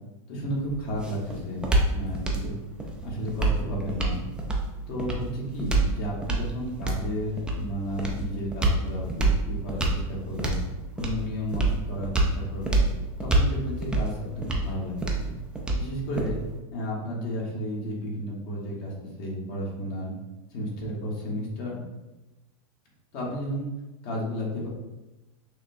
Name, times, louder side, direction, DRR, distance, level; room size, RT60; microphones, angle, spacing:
voice 1, 0.3-2.5 2.8-4.2 4.9-10.6 11.0-12.8 13.2-14.9 15.2-15.4 15.7-16.4 16.7-20.1 20.5-21.8 23.1-23.7 24.0-24.7, equal, 45° left, -3 dB, 1.3 m, -32 dB
sound 1, 0.6-16.6, right 2 dB, 5° right, 0.4 m, -28 dB
6.2 x 2.2 x 2.6 m, 1.1 s
supercardioid pair, 140°, 18 cm